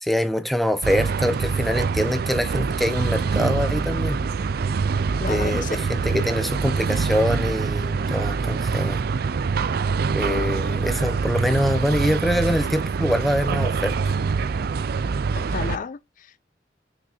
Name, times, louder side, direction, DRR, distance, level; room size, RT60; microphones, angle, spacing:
voice 1, 0.0-4.2 5.2-9.0 10.1-14.1, equal, ahead, 0.8 m, -24 dB
sound 1, 0.8-15.8, right 5 dB, 55° right, 0.4 m, -25 dB
voice 2, 5.2-5.8 15.3-16.4, left 5 dB, 45° left, 0.4 m, -32 dB
6.2 x 6.0 x 4.3 m
head